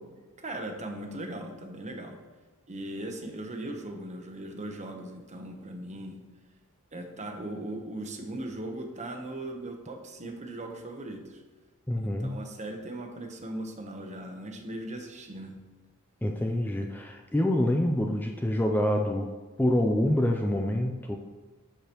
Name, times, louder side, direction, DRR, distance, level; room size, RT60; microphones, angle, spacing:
voice 1, 0.4-2.2 2.7-6.2 6.9-11.4 12.0-15.5, right 1 dB, 30° right, 4 dB, 0.9 m, -38 dB
voice 2, 11.9-12.4 16.2-19.3 19.6-21.2, left 1 dB, 10° left, 2 dB, 0.4 m, -26 dB
12.0 x 4.9 x 3.0 m, 1.3 s
head